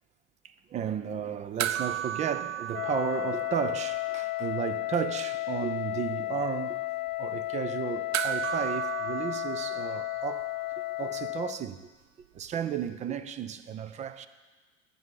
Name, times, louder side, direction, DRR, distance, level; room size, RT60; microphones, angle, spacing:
voice 1, 0.4-6.8 7.2-10.5 10.8-11.9 12.3-14.3, right 8 dB, 20° right, 0.4 m, -34 dB
sound 1, 1.6-4.3 4.5-4.6 8.1-10.7 12.9-13.0, right 11 dB, 60° right, 0.6 m, -34 dB
Wind instrument woodwind instrument, 2.7-11.6, left 19 dB, 35° left, 0.5 m, -33 dB
11.0 x 5.5 x 8.1 m
hypercardioid pair, 95°, 37 cm